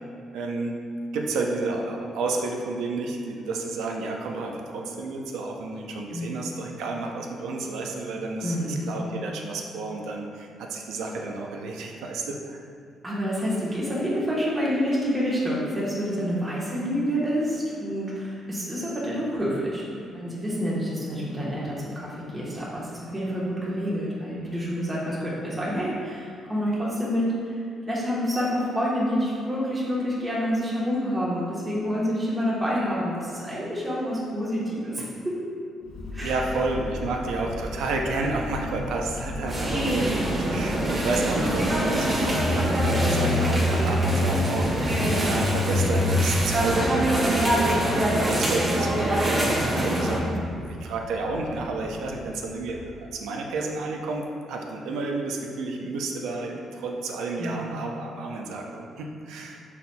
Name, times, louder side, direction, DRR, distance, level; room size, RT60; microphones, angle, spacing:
voice 1, 0.3-0.7 1.1-12.6 36.2-50.3 50.6-59.6, right 3 dB, 85° right, 1 dB, 0.5 m, -31 dB
voice 2, 8.4-9.2 13.0-19.8 20.1-27.6 27.9-35.5 36.1-36.4 37.1-37.2 41.3-41.9 44.9-45.3 49.8-50.5 57.4-57.8, equal, 20° right, -7 dB, 1.1 m, -28 dB
Motorcycle, 35.9-53.1, left 2 dB, 75° left, 0.4 m, -30 dB
sound 1, 39.5-50.2, right 1 dB, 35° right, 1.0 m, -25 dB
5.7 x 4.1 x 2.2 m, 2.3 s
cardioid pair, 100°, 0 cm